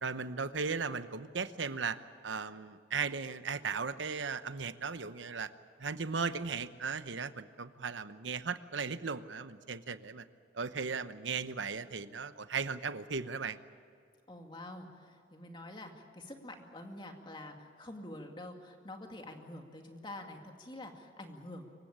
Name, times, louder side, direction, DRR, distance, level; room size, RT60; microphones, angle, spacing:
voice 1, 0.0-2.0 2.2-5.5 5.8-10.3 10.5-13.6, right 5 dB, 85° right, 12 dB, 0.9 m, -37 dB
voice 2, 14.3-21.7, left 1 dB, 25° left, 3 dB, 2.3 m, -47 dB
26.0 x 15.5 x 8.8 m, 2.4 s
head